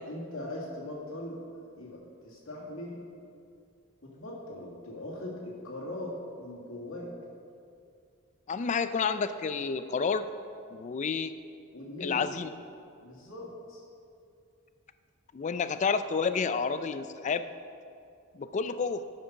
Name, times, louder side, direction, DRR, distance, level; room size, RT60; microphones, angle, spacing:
voice 1, 0.1-1.4 1.8-3.0 4.0-7.1 11.7-12.3 13.0-13.8, left 1 dB, 70° left, -4 dB, 1.8 m, -40 dB
voice 2, 8.5-10.3 10.7-11.3 12.0-12.5 15.3-17.5 18.3-19.1, left 5 dB, 35° left, 12 dB, 0.3 m, -30 dB
11.0 x 5.4 x 5.8 m, 2.5 s
head